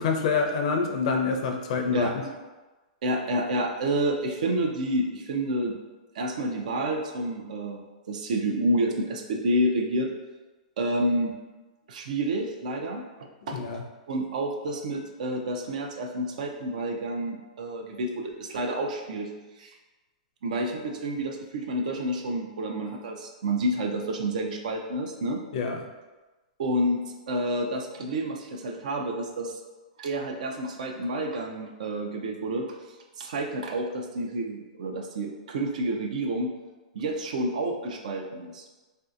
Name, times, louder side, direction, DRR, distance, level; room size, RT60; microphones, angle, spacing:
voice 1, 0.0-2.1 13.5-13.8 25.5-25.9, left 5 dB, 60° left, 3 dB, 0.4 m, -26 dB
voice 2, 3.0-5.8 6.1-7.8 8.1-10.1 10.8-11.4 11.9-13.0 13.5-13.6 14.1-19.3 19.6-19.7 20.4-25.4 26.6-29.6 30.0-32.8 33.2-36.5 36.9-38.6, right 1 dB, 70° right, 3 dB, 0.5 m, -29 dB
3.2 x 2.7 x 2.4 m, 1.2 s
hypercardioid pair, 145°, 4 cm